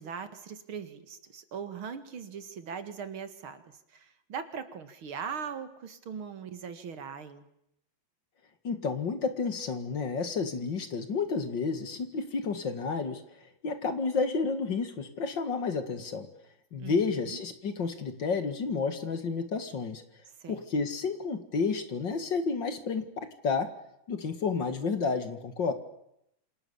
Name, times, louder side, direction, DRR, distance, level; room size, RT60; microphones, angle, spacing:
voice 1, 0.0-7.5 16.8-17.4 20.4-20.6, right 6 dB, 75° right, 10 dB, 2.7 m, -40 dB
voice 2, 8.6-16.3 16.7-20.0 20.5-23.1 23.4-23.7 24.1-25.7, left 4 dB, 60° left, 9 dB, 2.7 m, -31 dB
28.0 x 27.0 x 7.2 m, 0.80 s
omnidirectional pair, 2.3 m